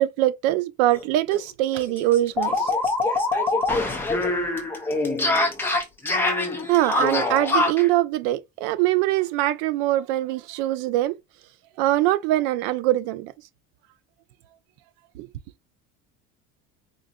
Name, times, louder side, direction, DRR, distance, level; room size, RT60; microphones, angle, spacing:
voice 1, 0.0-2.7 6.7-11.1 11.8-13.3 15.2-15.3, right 15 dB, 90° right, 0.6 m, -23 dB
sound 1, 0.9-1.0 1.3-1.4 1.7-7.9, left 2 dB, 5° left, 0.4 m, -24 dB
4.0 x 2.5 x 2.3 m
cardioid pair, 175°, 35 cm